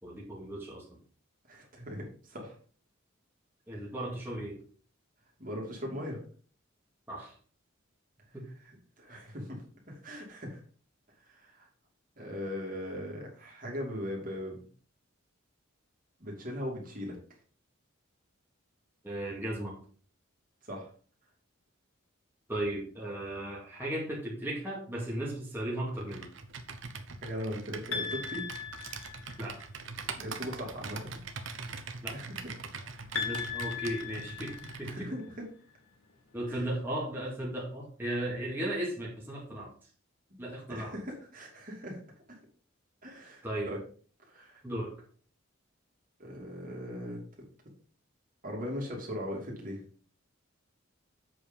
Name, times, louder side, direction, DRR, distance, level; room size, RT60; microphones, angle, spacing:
voice 1, 0.0-1.0 3.7-4.6 7.1-7.3 8.3-8.5 19.0-19.8 22.5-26.3 29.4-29.6 32.0-32.2 33.2-35.1 36.3-39.7 40.4-40.9 43.4-43.7 44.6-44.9, right 1 dB, 10° right, -5 dB, 2.2 m, -36 dB
voice 2, 1.5-2.5 5.4-6.2 8.7-9.6 9.9-10.6 11.3-11.7 12.2-14.6 16.2-17.2 20.6-20.9 27.2-28.4 30.2-31.2 31.7-31.8 32.1-32.5 33.0-33.2 34.9-35.5 36.5-36.6 40.7-42.0 43.0-43.8 44.3-44.6 46.2-47.2 48.4-49.8, equal, 40° right, -1 dB, 2.8 m, -39 dB
Computer keyboard, 26.0-35.0, right 4 dB, 65° right, 1.0 m, -42 dB
sound 1, 27.9-29.6 33.2-35.2, left 7 dB, 85° left, 1.7 m, -37 dB
7.9 x 4.9 x 5.3 m, 0.43 s
head